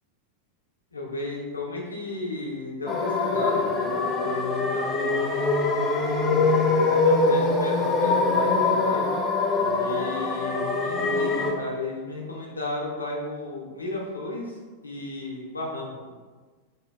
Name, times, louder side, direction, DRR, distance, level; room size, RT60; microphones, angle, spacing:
voice 1, 0.9-5.5 6.2-9.1 9.8-14.6 14.8-16.1, left 2 dB, 80° left, -2 dB, 0.5 m, -34 dB
sound 1, 2.9-11.5, left 3 dB, 20° left, 0.4 m, -23 dB
2.7 x 2.2 x 2.2 m, 1.4 s
figure-of-eight pair, 90°, 0 cm